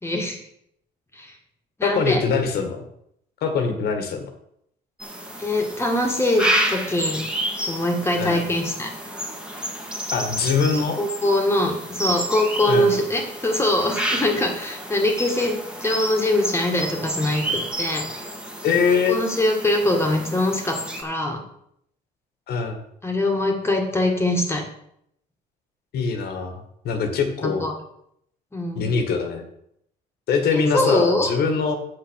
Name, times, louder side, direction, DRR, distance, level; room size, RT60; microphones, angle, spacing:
voice 1, 0.0-0.4 1.2-1.3 1.8-2.2 5.4-7.2 7.7-8.9 11.0-18.1 18.9-21.4 23.0-24.6 27.4-27.7 28.5-28.9 30.5-31.3, left 1 dB, 15° left, 1 dB, 2.0 m, -23 dB
voice 2, 1.8-2.8 3.4-4.3 8.2-8.4 10.1-11.0 12.7-12.9 18.6-19.2 22.5-22.8 25.9-27.7 28.8-29.4 30.3-31.8, left 5 dB, 70° left, 5 dB, 1.9 m, -23 dB
sound 1, 5.0-21.0, right 1 dB, 5° right, 1.9 m, -30 dB
7.5 x 6.8 x 6.5 m, 0.73 s
cardioid pair, 110°, 17 cm